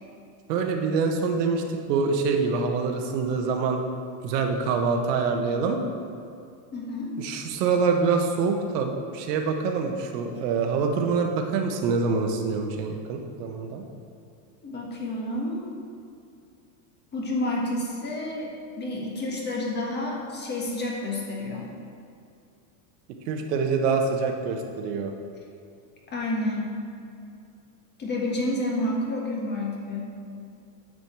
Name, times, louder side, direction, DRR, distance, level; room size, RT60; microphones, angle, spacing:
voice 1, 0.5-1.6 1.9-3.8 4.2-5.8 7.2-13.8 23.3-25.1, right 4 dB, 85° right, 4 dB, 1.4 m, -25 dB
voice 2, 6.7-7.1 14.6-15.7 17.1-21.7 26.1-26.7 28.0-30.1, left 1 dB, 20° left, -2 dB, 1.5 m, -29 dB
9.6 x 5.2 x 7.3 m, 2.5 s
supercardioid pair, 160°, 47 cm